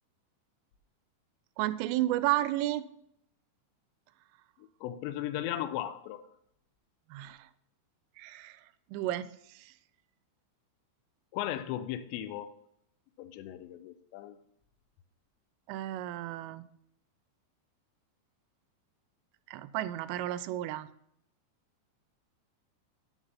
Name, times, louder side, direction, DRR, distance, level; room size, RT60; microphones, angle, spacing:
voice 1, 1.6-2.8 7.1-7.5 8.2-8.6 8.9-9.7 15.7-16.6 19.5-20.9, right 15 dB, 85° right, 14 dB, 3.1 m, -32 dB
voice 2, 4.6-6.3 11.3-12.5 13.2-14.4, left 12 dB, 85° left, 12 dB, 2.5 m, -37 dB
9.9 x 6.0 x 4.1 m, 0.73 s
omnidirectional pair, 5.7 m